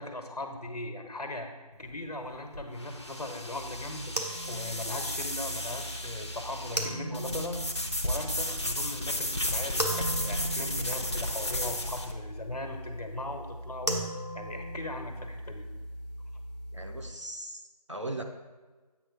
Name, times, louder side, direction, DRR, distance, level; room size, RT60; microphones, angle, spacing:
voice 1, 0.0-1.5 1.8-4.1 4.5-7.6 8.0-14.0 14.3-15.7, left 2 dB, 75° left, 5 dB, 1.3 m, -38 dB
sound 1, 1.7-12.1, left 1 dB, 45° left, 0.7 m, -34 dB
sound 2, 3.5-17.1, right 1 dB, 85° right, 1.3 m, -38 dB
voice 2, 16.7-17.6 17.9-18.2, right 1 dB, 50° right, 3 dB, 0.6 m, -38 dB
8.1 x 4.5 x 4.7 m, 1.3 s
figure-of-eight pair, 175°, 20 cm